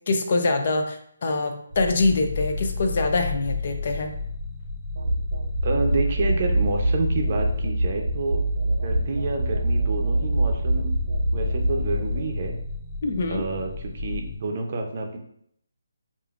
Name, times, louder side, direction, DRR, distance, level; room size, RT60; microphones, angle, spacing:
voice 1, 0.1-4.1 13.0-13.4, left 3 dB, 45° left, 5 dB, 0.5 m, -24 dB
sound 1, 1.7-14.4, left 4 dB, 15° right, 0.8 m, -32 dB
sound 2, 5.0-12.6, right 2 dB, 85° right, 0.5 m, -25 dB
voice 2, 5.6-8.4 8.8-10.9 11.3-12.5 13.3-15.2, right 3 dB, 40° right, 2 dB, 0.6 m, -28 dB
5.0 x 2.5 x 2.4 m, 0.69 s
hypercardioid pair, 165°, 0 cm